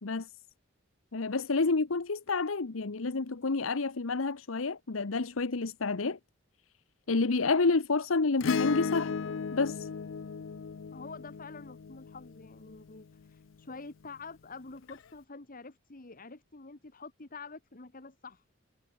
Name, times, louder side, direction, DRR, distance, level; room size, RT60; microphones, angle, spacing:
voice 1, 1.1-6.2 7.1-9.1 9.5-9.9, left 3 dB, 85° left, 0.9 m, -29 dB
Acoustic guitar / Strum, 8.4-13.0 14.9-15.0, left 5 dB, 70° left, 0.5 m, -35 dB
voice 2, 10.9-18.4, left 4 dB, 45° left, 1.5 m, -47 dB
head